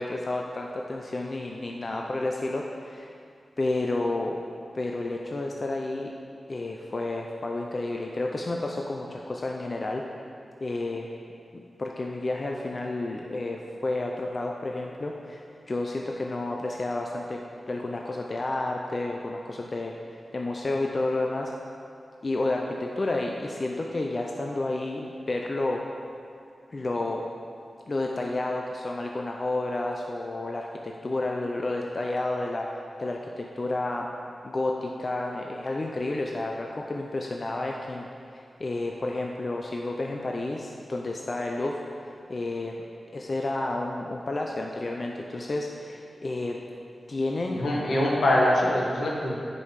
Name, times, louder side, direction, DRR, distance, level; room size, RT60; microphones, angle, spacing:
voice 1, 0.0-3.1 3.6-4.4 4.7-6.1 6.5-10.0 10.6-11.1 11.5-17.4 17.7-19.9 20.3-21.5 22.2-25.8 26.7-27.2 27.9-32.7 33.0-34.1 34.4-38.1 38.3-42.7 43.1-46.6 47.1-47.6, left 2 dB, 45° left, 0 dB, 0.6 m, -31 dB
voice 2, 47.5-49.3, left 1 dB, 80° left, -3 dB, 1.7 m, -23 dB
9.6 x 5.3 x 5.8 m, 2.4 s
cardioid pair, 70°, 0 cm